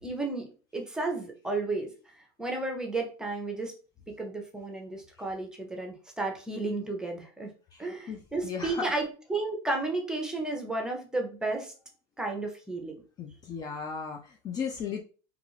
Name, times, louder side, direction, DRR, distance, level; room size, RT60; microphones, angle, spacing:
voice 1, 0.0-1.9 2.4-3.7 4.1-7.5 7.8-11.7 12.2-13.0, right 2 dB, 5° right, 2 dB, 0.7 m, -33 dB
voice 2, 7.7-8.9 13.2-15.0, left 6 dB, 30° left, 3 dB, 0.4 m, -36 dB
2.4 x 2.4 x 3.0 m, 0.37 s
supercardioid pair, 120°, 13 cm